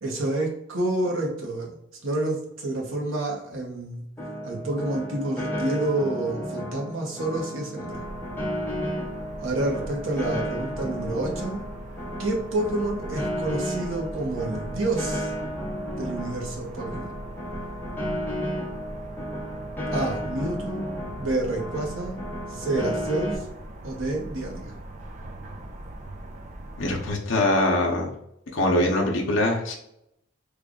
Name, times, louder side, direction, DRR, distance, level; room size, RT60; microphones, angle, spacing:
voice 1, 0.0-1.8 2.0-4.0 4.4-8.0 9.4-11.6 12.2-15.3 15.9-17.2 19.9-20.9 21.1-22.2 22.5-23.5 23.8-24.8, right 2 dB, 80° right, -1 dB, 1.0 m, -29 dB
Piano, 4.2-23.3, equal, 10° left, 0.7 m, -33 dB
sound 1, 7.9-27.1, right 1 dB, 35° right, 0.4 m, -40 dB
voice 2, 26.8-28.1 28.5-29.7, left 1 dB, 75° left, -1 dB, 0.7 m, -23 dB
3.3 x 2.3 x 3.7 m, 0.79 s
head